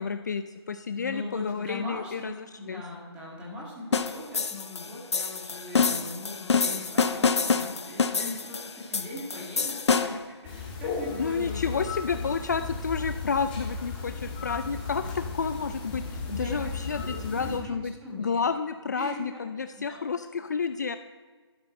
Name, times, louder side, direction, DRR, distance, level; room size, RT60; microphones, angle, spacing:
voice 1, 0.0-2.3 2.7-2.8 11.2-17.9 18.2-21.0, left 5 dB, 40° left, 9 dB, 0.4 m, -30 dB
voice 2, 1.0-11.9 16.3-16.7 17.0-17.3 17.6-17.7 18.0-18.4 18.9-19.4 19.8-20.1, left 1 dB, 10° right, -4 dB, 1.9 m, -40 dB
sound 1, 3.9-10.3, left 5 dB, 80° left, 0.9 m, -27 dB
sound 2, 10.4-17.6, left 4 dB, 20° left, 1.9 m, -35 dB
12.0 x 10.5 x 4.3 m, 1.4 s
hypercardioid pair, 170°, 14 cm